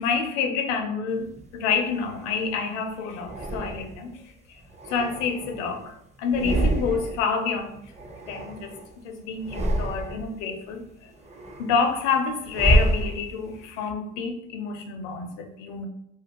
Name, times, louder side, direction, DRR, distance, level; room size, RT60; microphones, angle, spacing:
voice 1, 0.0-4.1 4.9-7.8 8.3-11.1 11.6-15.9, left 5 dB, 75° left, 0.6 m, -28 dB
sound 1, 1.3-2.5 3.2-4.2 4.6-5.9 6.2-7.3 7.6-8.9 9.3-10.4 10.8-13.6, right 1 dB, 20° right, 0.5 m, -28 dB
2.5 x 2.3 x 2.8 m
hypercardioid pair, 80°, 36 cm